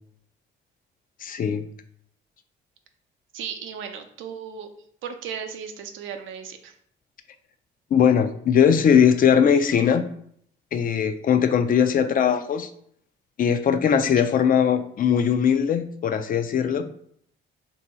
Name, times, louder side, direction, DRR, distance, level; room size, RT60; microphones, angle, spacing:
voice 1, 1.2-1.6 7.9-10.1 10.7-12.7 13.4-16.8, left 7 dB, 45° left, 9 dB, 0.4 m, -20 dB
voice 2, 3.3-4.7 5.0-6.7 14.1-14.2, right 7 dB, 80° right, 6 dB, 0.5 m, -35 dB
2.7 x 2.6 x 4.3 m, 0.65 s
cardioid pair, 90°, 20 cm